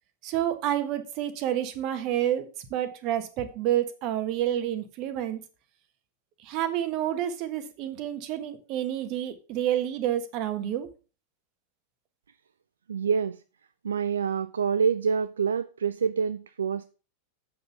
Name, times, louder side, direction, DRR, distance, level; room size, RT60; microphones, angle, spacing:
voice 1, 0.2-5.4 6.4-10.9, right 11 dB, 40° right, 1.4 m, -29 dB
voice 2, 12.9-13.4 13.8-16.8, right 6 dB, 70° right, 0.4 m, -26 dB
7.5 x 6.8 x 5.7 m
figure-of-eight pair, 90°, 0 cm